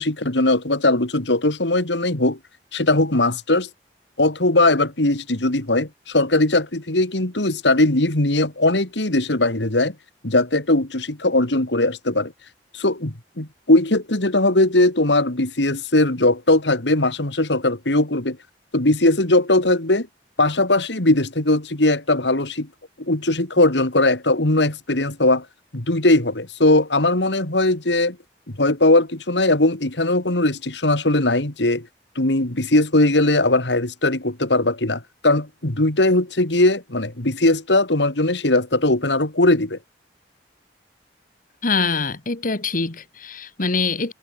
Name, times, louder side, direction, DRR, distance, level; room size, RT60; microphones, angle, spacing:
voice 1, 0.0-2.4 2.7-3.7 4.2-9.9 10.2-18.4 18.7-20.1 20.4-22.7 23.1-25.5 25.7-28.2 28.6-31.9 32.1-39.8, left 2 dB, 80° left, 2.9 m, -19 dB
voice 2, 41.6-44.1, left 4 dB, 50° left, 1.7 m, -24 dB
head